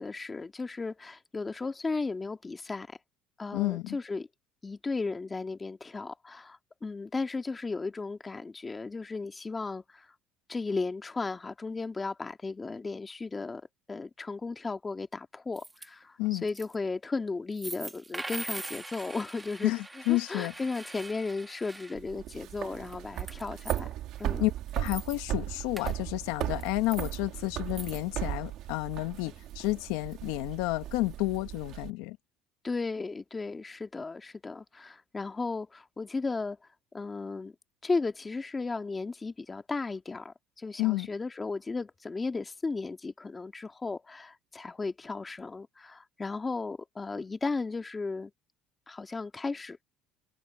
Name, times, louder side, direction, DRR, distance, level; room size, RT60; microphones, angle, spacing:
voice 1, 0.0-2.9 3.4-4.3 4.6-10.1 10.5-13.6 13.9-19.7 20.1-23.9 24.2-24.5 32.6-36.6 36.9-37.5 37.8-48.3 48.9-49.8, left 3 dB, 20° left, 1.8 m, -35 dB
voice 2, 3.5-4.0 16.2-16.4 19.6-20.5 24.4-32.2 40.8-41.1, left 20 dB, 85° left, 1.2 m, -30 dB
sound 1, 15.6-15.9 16.3-16.7 17.5-22.0 22.7-23.8 24.2-24.3 24.6-25.2 25.8-25.9 26.5-27.2 27.7-28.0, right 2 dB, 10° right, 1.3 m, -42 dB
sound 2, 22.0-31.9, right 13 dB, 60° right, 2.3 m, -37 dB
cardioid pair, 115°, 0 cm